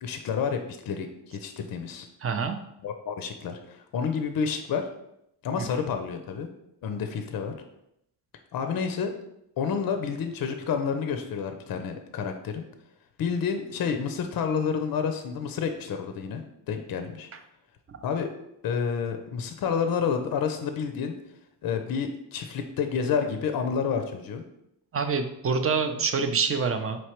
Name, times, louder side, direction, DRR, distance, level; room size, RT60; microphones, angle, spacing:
voice 1, 0.0-2.1 2.8-4.9 5.4-6.5 6.8-7.5 8.5-9.1 9.6-12.7 13.2-16.4 16.7-17.3 18.0-18.3 18.6-21.1 21.6-24.4, left 6 dB, 55° left, 6 dB, 0.5 m, -29 dB
voice 2, 2.2-2.6 5.6-5.7 17.9-18.0 24.9-27.0, right 5 dB, 35° right, 7 dB, 0.5 m, -26 dB
4.2 x 3.2 x 3.0 m, 0.80 s
cardioid pair, 85°, 44 cm